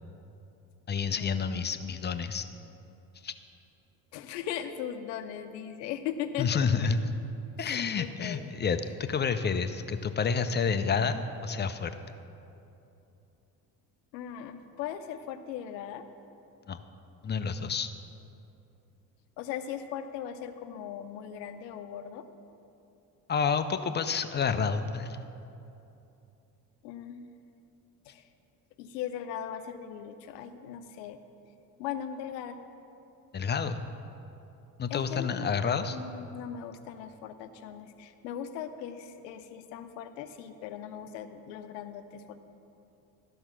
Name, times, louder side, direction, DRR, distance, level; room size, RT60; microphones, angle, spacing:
voice 1, 0.9-2.5 3.2-3.3 6.4-7.1 7.6-12.0 16.7-16.8 17.2-17.9 23.3-25.3 33.3-33.9 34.8-36.0, left 5 dB, 25° left, 10 dB, 0.4 m, -29 dB
voice 2, 4.1-6.7 7.6-8.5 14.1-16.0 19.4-22.3 26.8-27.4 28.1-28.2 28.8-31.2 31.8-32.6 34.9-35.5 35.9-42.4, left 9 dB, 80° left, 9 dB, 0.7 m, -39 dB
12.0 x 5.4 x 6.0 m, 2.8 s
hypercardioid pair, 55°, 50 cm